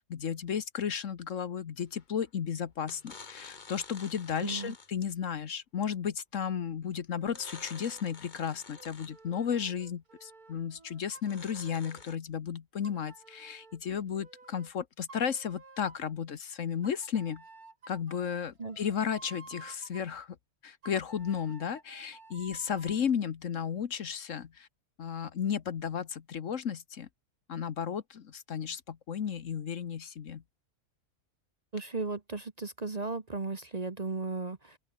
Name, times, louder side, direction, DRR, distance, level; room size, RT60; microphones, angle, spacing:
voice 1, 0.0-17.4 17.9-20.4 20.6-24.7 25.0-27.1 27.5-30.4, left 7 dB, 60° left, 1.4 m, -34 dB
sound 1, 1.9-2.3 2.8-5.1 7.3-9.3 11.2-12.2, left 4 dB, 35° left, 1.4 m, -50 dB
voice 2, 4.4-4.7 18.6-18.8 31.7-34.8, right 3 dB, 30° right, 1.2 m, -36 dB
sound 2, 7.2-8.2 8.7-12.2 12.8-14.7 15.1-16.2 16.8-20.1 20.8-23.0, right 3 dB, 80° right, 4.0 m, -53 dB
open air
omnidirectional pair, 1.5 m